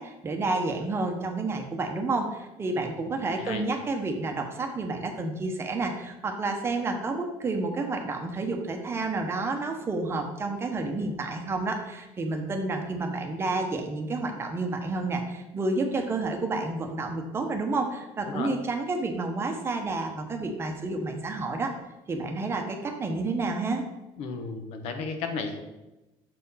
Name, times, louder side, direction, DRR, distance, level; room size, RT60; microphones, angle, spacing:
voice 1, 0.0-21.7 22.1-23.8, right 3 dB, 20° right, 3 dB, 0.8 m, -30 dB
voice 2, 24.2-25.6, left 4 dB, 70° left, 6 dB, 1.0 m, -34 dB
6.5 x 4.3 x 5.5 m, 0.99 s
cardioid pair, 155°, 11 cm